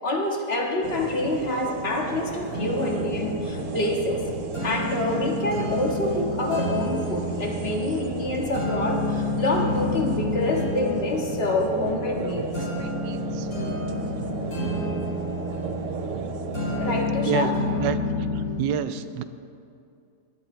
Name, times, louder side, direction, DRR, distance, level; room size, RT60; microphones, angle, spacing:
voice 1, 0.0-4.2 4.6-12.7 16.7-17.6, left 2 dB, 35° left, 1 dB, 1.7 m, -27 dB
sound 1, 0.8-17.1, right 5 dB, 55° right, 1.1 m, -35 dB
sound 2, 2.5-18.5, left 2 dB, 65° left, 4.7 m, -30 dB
voice 2, 12.8-13.5 17.2-18.0 18.3-19.2, right 10 dB, 90° right, 10 dB, 1.3 m, -29 dB
18.0 x 12.0 x 4.4 m, 2.5 s
omnidirectional pair, 1.8 m